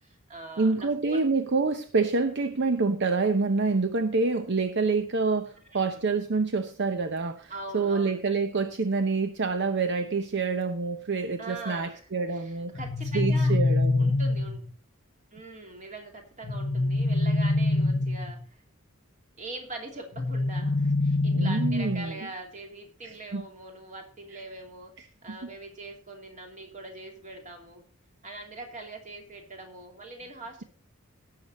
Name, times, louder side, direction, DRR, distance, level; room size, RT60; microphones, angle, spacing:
voice 1, 0.0-1.3 5.7-6.0 7.5-8.2 11.4-13.6 14.0-14.6 15.3-18.4 19.4-24.9 25.2-27.8 28.2-30.6, right 2 dB, 35° right, 2.8 m, -42 dB
voice 2, 0.6-12.7 13.1-14.1 21.3-22.2 23.0-23.4 24.3-24.4 25.3-25.4, right 4 dB, 55° right, 0.7 m, -27 dB
sound 1, 12.7-14.7 16.4-18.4 20.2-22.1, left 2 dB, 45° left, 1.0 m, -25 dB
17.0 x 6.6 x 4.2 m
head